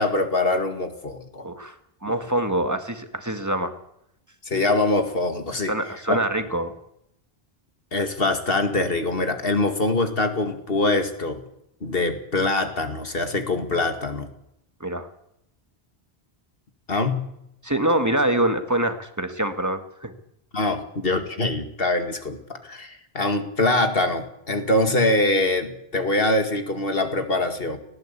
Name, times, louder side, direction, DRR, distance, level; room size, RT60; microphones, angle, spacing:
voice 1, 0.0-1.5 4.5-5.7 6.1-6.2 7.9-11.4 11.8-14.3 16.9-17.3 20.5-27.8, left 2 dB, 60° left, 6 dB, 2.4 m, -23 dB
voice 2, 1.4-1.8 2.0-3.7 5.7-6.7 14.8-15.1 17.6-20.1, right 1 dB, 15° right, 7 dB, 1.8 m, -25 dB
18.5 x 16.5 x 8.5 m, 0.77 s
omnidirectional pair, 1.1 m